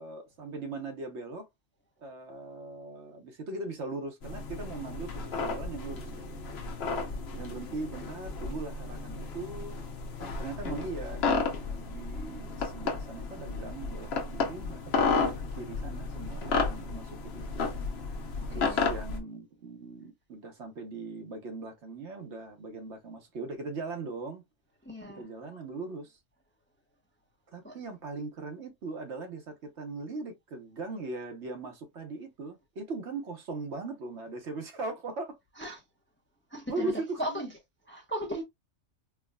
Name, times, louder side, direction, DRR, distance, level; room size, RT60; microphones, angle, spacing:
voice 1, 0.0-1.5 2.0-6.4 6.7-7.0 7.3-9.8 10.2-17.5 18.5-24.4 25.1-26.2 27.5-35.4 36.7-37.5, right 3 dB, 65° right, 1.1 m, -40 dB
sound 1, 4.2-19.2, left 4 dB, 60° left, 1.0 m, -33 dB
voice 2, 18.5-18.9 24.8-25.3 27.6-27.8 35.6-35.8 36.5-37.5 37.9-38.4, equal, 10° left, 0.7 m, -37 dB
4.6 x 2.3 x 2.2 m
omnidirectional pair, 1.3 m